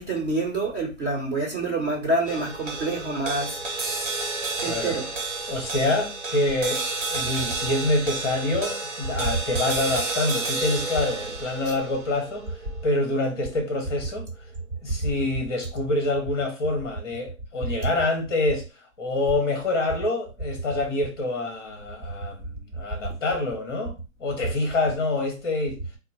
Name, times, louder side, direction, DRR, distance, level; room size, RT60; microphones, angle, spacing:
voice 1, 0.0-3.6 4.6-5.1 11.6-11.8, right 2 dB, 30° right, 1.4 m, -27 dB
sound 1, 2.3-14.8, right 3 dB, 60° right, 1.2 m, -32 dB
voice 2, 4.6-5.0 5.5-12.5 12.8-14.3 14.8-18.7 19.0-25.8, left 2 dB, 20° left, 0.9 m, -26 dB
4.0 x 2.1 x 4.2 m
hypercardioid pair, 160°, 41 cm